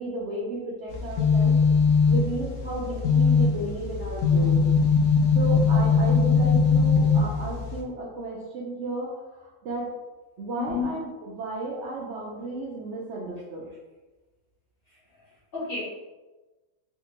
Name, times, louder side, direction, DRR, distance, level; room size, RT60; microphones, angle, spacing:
voice 1, 0.0-1.5 2.1-4.6 5.3-9.9 10.4-13.7, right 2 dB, 70° right, -4 dB, 0.7 m, -33 dB
sound 1, 0.9-7.8, left 5 dB, 75° left, 1.0 m, -21 dB
voice 2, 10.6-11.0 14.9-15.3 15.5-15.8, left 5 dB, 50° left, -7 dB, 0.8 m, -31 dB
3.4 x 2.6 x 2.8 m, 1.2 s
omnidirectional pair, 1.7 m